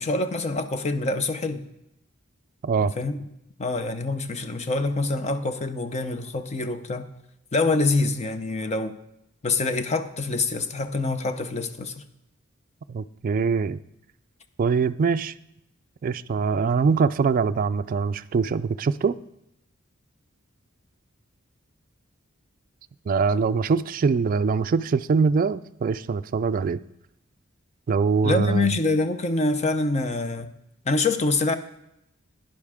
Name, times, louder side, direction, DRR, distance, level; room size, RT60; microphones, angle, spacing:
voice 1, 0.0-1.7 2.8-3.2 3.6-7.1 7.5-8.9 9.4-11.9 28.2-30.5 30.9-31.6, left 3 dB, 35° left, 9 dB, 0.6 m, -25 dB
voice 2, 12.9-13.8 14.6-15.3 16.0-19.2 23.1-26.8 27.9-28.8, right 5 dB, 40° right, 12 dB, 0.3 m, -23 dB
11.5 x 10.5 x 3.6 m, 0.83 s
head